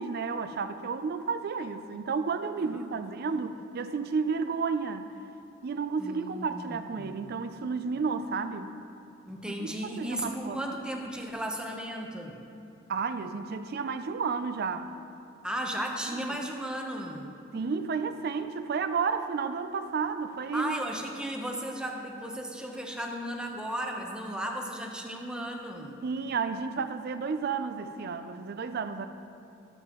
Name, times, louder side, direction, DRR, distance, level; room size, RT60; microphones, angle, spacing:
voice 1, 0.0-5.1 5.6-8.7 9.5-9.7 10.0-10.7 12.9-14.9 16.1-16.2 17.5-20.8 26.0-29.1, right 5 dB, 55° right, 10 dB, 0.4 m, -32 dB
voice 2, 6.0-7.4 9.3-12.4 15.4-17.3 20.5-26.0, equal, 5° right, 1 dB, 0.7 m, -35 dB
12.5 x 7.4 x 3.0 m, 2.8 s
head